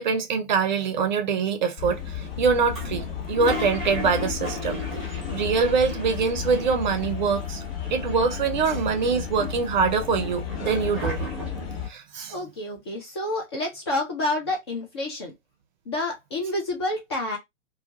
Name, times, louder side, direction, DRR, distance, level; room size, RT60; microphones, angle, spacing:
voice 1, 0.0-4.8 5.1-7.6 7.9-11.2 11.9-12.3, right 5 dB, 40° right, 0.6 m, -24 dB
sound 1, 1.8-11.9, left 8 dB, 50° left, 0.8 m, -33 dB
Toilet flush, 2.7-7.1 7.3-7.4 7.6-8.5 9.0-11.8, equal, ahead, 0.8 m, -35 dB
voice 2, 12.3-15.3 15.9-17.4, left 2 dB, 20° left, 0.4 m, -29 dB
2.3 x 2.2 x 2.7 m
figure-of-eight pair, 115°, 38 cm